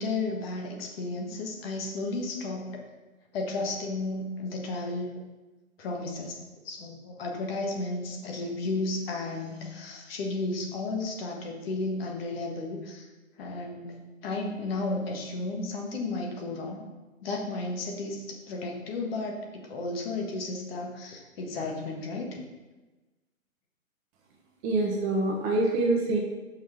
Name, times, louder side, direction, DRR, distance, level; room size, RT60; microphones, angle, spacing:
voice 1, 0.0-2.7 3.3-5.1 5.8-13.1 13.4-14.0 14.2-16.8 17.2-22.4, left 2 dB, 45° left, 1 dB, 1.5 m, -33 dB
voice 2, 24.6-26.2, right 2 dB, 25° right, 0 dB, 1.1 m, -25 dB
5.8 x 4.8 x 5.7 m, 1.2 s
figure-of-eight pair, 130°, 42 cm